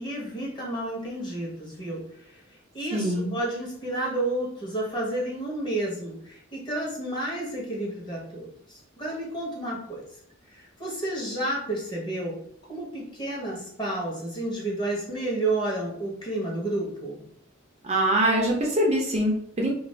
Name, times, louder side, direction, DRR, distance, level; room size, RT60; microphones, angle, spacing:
voice 1, 0.0-2.4 2.7-10.1 10.5-17.2, right 1 dB, 20° left, -4 dB, 0.9 m, -31 dB
voice 2, 2.9-3.4 17.8-19.7, right 1 dB, 30° right, -1 dB, 0.5 m, -24 dB
2.4 x 2.3 x 3.2 m, 0.65 s
head